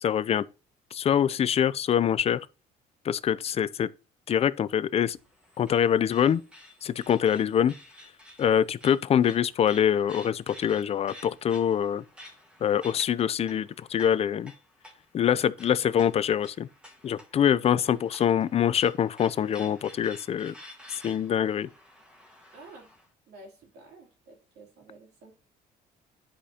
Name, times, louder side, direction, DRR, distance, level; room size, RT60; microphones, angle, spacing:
voice 1, 0.0-0.4 0.9-2.4 3.0-3.9 4.3-5.2 5.6-6.4 6.8-7.7 8.4-12.0 12.6-14.5 15.1-16.7 17.0-20.5 20.9-21.7, left 9 dB, 40° left, 0.4 m, -24 dB
sound 1, 4.9-23.1, left 1 dB, 5° right, 1.5 m, -51 dB
voice 2, 22.5-22.9 23.3-25.3, right 2 dB, 75° right, 2.9 m, -51 dB
10.0 x 4.9 x 2.8 m
cardioid pair, 110°, 17 cm